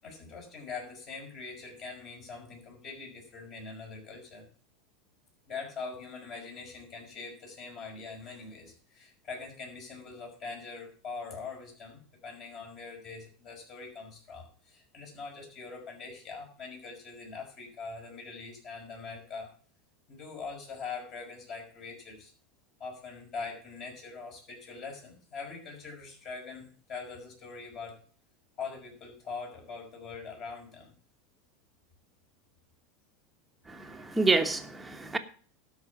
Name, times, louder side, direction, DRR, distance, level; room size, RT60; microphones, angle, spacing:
voice 1, 0.0-4.4 5.5-19.5 20.1-22.3 22.8-28.0 28.6-30.9, left 4 dB, 40° left, 0 dB, 6.0 m, -43 dB
voice 2, 33.7-35.2, right 3 dB, 10° right, 5 dB, 1.3 m, -28 dB
12.5 x 5.8 x 7.1 m, 0.44 s
supercardioid pair, 140°, 0 cm